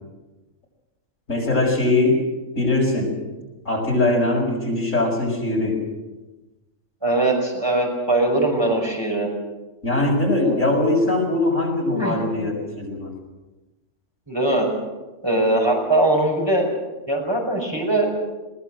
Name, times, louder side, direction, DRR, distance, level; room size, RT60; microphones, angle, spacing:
voice 1, 1.3-2.2 2.5-3.1 3.6-5.8 9.8-13.1, left 2 dB, 75° left, 0 dB, 6.1 m, -21 dB
voice 2, 7.0-9.3 10.4-10.6 11.9-12.2 14.3-14.7 15.2-16.7 17.1-18.1, right 2 dB, 20° right, 0 dB, 5.6 m, -21 dB
21.5 x 19.5 x 7.7 m, 1.1 s
omnidirectional pair, 1.4 m